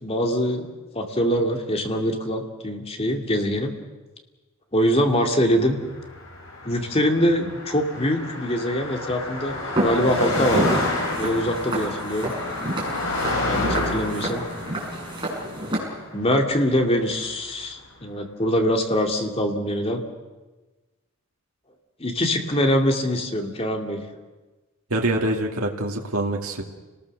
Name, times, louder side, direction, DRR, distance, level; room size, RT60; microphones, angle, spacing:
voice 1, 0.0-3.7 4.7-5.8 6.6-10.8 11.2-12.3 13.5-14.4 16.1-20.0 22.0-24.0, equal, 25° left, 3 dB, 2.5 m, -23 dB
Car passing by, 5.8-17.3, left 2 dB, 60° left, 7.1 m, -30 dB
Walk footsteps, 9.8-15.8, right 1 dB, 20° right, 6.9 m, -28 dB
voice 2, 24.9-26.6, right 1 dB, 85° right, 1 dB, 2.4 m, -25 dB
29.5 x 20.0 x 6.7 m, 1.2 s
head